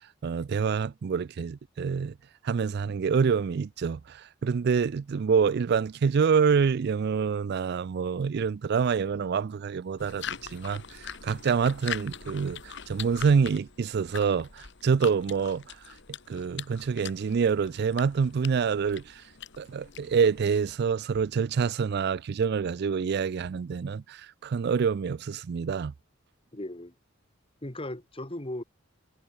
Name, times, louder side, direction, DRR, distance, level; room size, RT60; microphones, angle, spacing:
voice 1, 0.2-2.1 2.4-15.8 16.3-19.2 19.6-25.9, right 6 dB, 55° right, 0.4 m, -26 dB
sound 1, 10.0-20.8, left 7 dB, 65° left, 2.5 m, -42 dB
voice 2, 26.5-26.9 27.6-28.6, left 1 dB, 30° left, 2.4 m, -37 dB
head